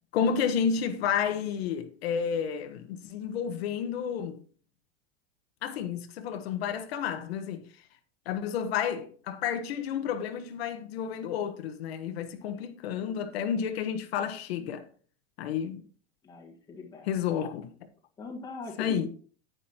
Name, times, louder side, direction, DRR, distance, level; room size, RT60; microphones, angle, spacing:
voice 1, 0.1-4.4 5.6-7.6 8.2-14.8 15.4-15.8 17.0-17.9 18.8-19.1, left 7 dB, 80° left, 1.2 m, -31 dB
voice 2, 16.2-17.1 18.2-19.1, left 4 dB, 15° left, 1.5 m, -41 dB
10.0 x 9.5 x 2.9 m
supercardioid pair, 175°, 31 cm